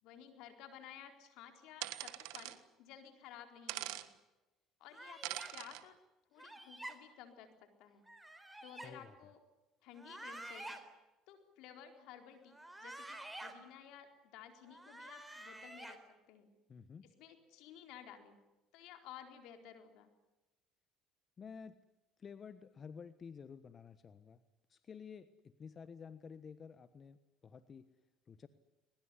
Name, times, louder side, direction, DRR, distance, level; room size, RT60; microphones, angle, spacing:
voice 1, 0.0-4.1 4.8-6.0 6.3-8.1 8.6-9.4 9.8-10.8 11.3-16.0 16.3-16.5 17.2-18.4 18.7-20.1, left 9 dB, 75° left, 6 dB, 4.2 m, -55 dB
sound 1, 1.8-2.6 3.7-4.1 5.2-5.8, right 17 dB, 80° right, 1.5 m, -42 dB
sound 2, 4.9-5.5 6.4-6.9 8.1-8.9 9.9-10.8 12.5-13.5 14.7-16.0, right 1 dB, 10° right, 4.1 m, -49 dB
voice 2, 8.8-9.2 16.7-17.1 21.4-21.8 22.2-24.4 24.7-27.9 28.3-28.5, left 6 dB, 40° left, 12 dB, 1.3 m, -52 dB
22.0 x 21.0 x 10.0 m, 1.0 s
supercardioid pair, 85°, 0 cm